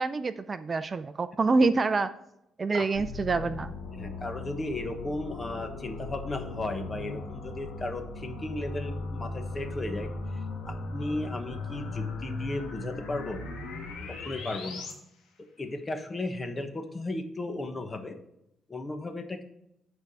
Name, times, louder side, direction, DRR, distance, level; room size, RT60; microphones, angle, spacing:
voice 1, 0.0-2.1 2.6-3.8, right 3 dB, 35° right, 13 dB, 0.4 m, -26 dB
sound 1, 2.9-14.9, left 3 dB, 80° left, 2.1 m, -38 dB
voice 2, 3.9-10.1 10.7-13.4 14.1-14.8 15.6-18.2 18.7-19.4, left 2 dB, 25° left, 7 dB, 1.2 m, -35 dB
9.1 x 4.7 x 5.5 m, 0.81 s
cardioid pair, 90°, 0 cm